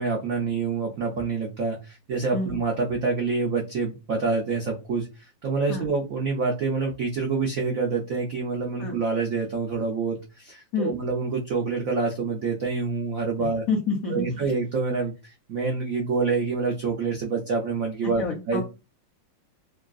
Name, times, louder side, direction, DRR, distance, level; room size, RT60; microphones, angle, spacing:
voice 1, 0.0-13.6 14.1-18.6, right 4 dB, 85° right, 0 dB, 0.7 m, -27 dB
voice 2, 13.4-14.5 18.2-18.6, left 4 dB, 85° left, 1 dB, 0.7 m, -28 dB
3.6 x 2.3 x 2.4 m, 0.28 s
omnidirectional pair, 2.2 m